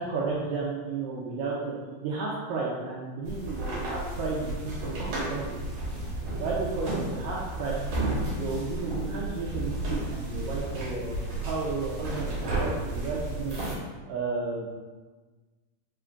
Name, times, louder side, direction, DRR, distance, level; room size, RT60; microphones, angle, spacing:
voice 1, 0.0-5.6 6.4-7.9 8.3-11.2 11.4-13.6 14.1-14.7, right 3 dB, 85° right, -4 dB, 1.9 m, -33 dB
sound 1, 3.2-13.7, right 2 dB, 65° right, 2.0 m, -32 dB
5.1 x 3.7 x 2.3 m, 1.3 s
omnidirectional pair, 4.4 m